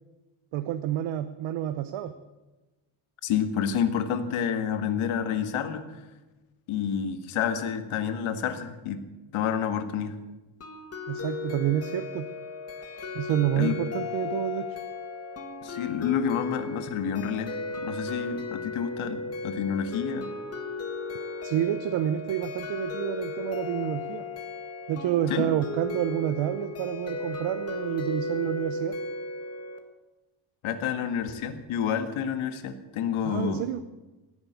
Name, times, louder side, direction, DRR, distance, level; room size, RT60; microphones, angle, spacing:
voice 1, 0.5-2.1 11.1-12.3 13.1-14.8 21.4-24.2 24.9-29.0 33.2-33.8, right 11 dB, 70° right, 10 dB, 1.0 m, -29 dB
voice 2, 3.2-6.0 6.7-9.0 9.3-10.2 13.6-13.7 15.6-20.3 25.3-25.4 30.6-33.6, left 8 dB, 80° left, 9 dB, 1.9 m, -29 dB
sound 1, 10.6-29.8, left 3 dB, 30° left, 1.9 m, -35 dB
17.5 x 10.0 x 8.2 m, 1.1 s
cardioid pair, 150°, 48 cm